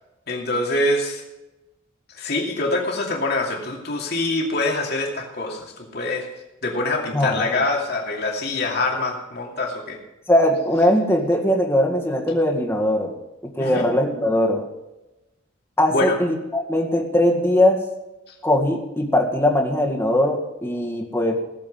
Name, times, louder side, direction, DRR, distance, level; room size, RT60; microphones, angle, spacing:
voice 1, 0.3-1.2 2.1-6.3 6.6-10.0 13.6-13.9 15.9-16.2, left 2 dB, 55° left, 0 dB, 2.6 m, -24 dB
voice 2, 7.1-7.6 10.3-13.1 13.6-14.6 15.8-17.8 18.4-21.4, left 1 dB, 15° left, 0 dB, 1.9 m, -20 dB
17.5 x 7.4 x 5.6 m, 0.99 s
head